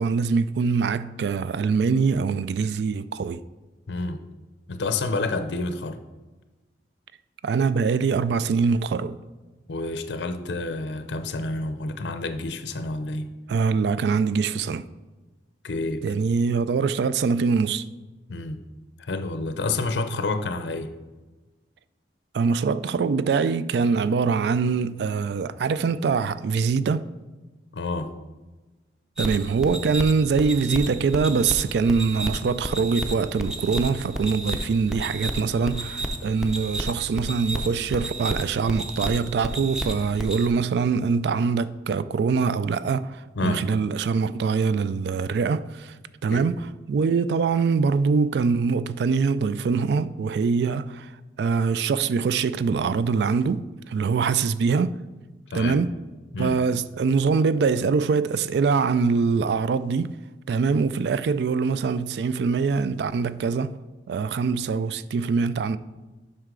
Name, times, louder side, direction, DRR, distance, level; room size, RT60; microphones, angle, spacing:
voice 1, 0.0-3.4 7.4-9.2 13.5-14.8 16.0-17.8 22.3-27.0 29.2-46.0 46.2-51.1 51.4-55.0 55.5-55.9 56.4-60.1 60.5-63.8 64.1-65.8, right 5 dB, 70° right, 0.3 m, -23 dB
voice 2, 3.9-4.2 4.7-6.0 9.7-13.3 15.6-16.0 18.3-18.6 19.0-20.9 27.7-28.1 43.4-43.6 46.3-46.4 55.5-55.8 56.3-56.6, left 3 dB, 85° left, 0.5 m, -29 dB
sound 1, 29.2-40.5, right 1 dB, 5° right, 0.5 m, -32 dB
7.8 x 5.5 x 3.8 m
head